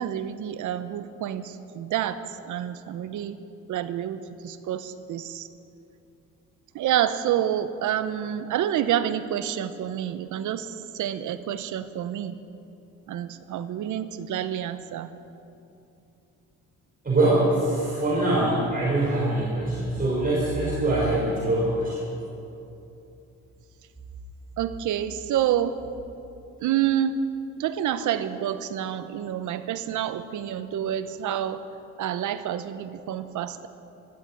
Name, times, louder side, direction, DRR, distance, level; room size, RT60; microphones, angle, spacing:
voice 1, 0.0-3.4 3.7-5.5 6.7-10.7 10.9-12.4 13.1-15.1 24.6-25.8 26.6-27.2 27.6-31.6 32.0-33.7, right 10 dB, 80° right, 12 dB, 0.9 m, -28 dB
voice 2, 17.0-22.0, right 1 dB, 30° right, -6 dB, 5.0 m, -23 dB
14.5 x 12.0 x 8.5 m, 2.8 s
cardioid pair, 90°, 30 cm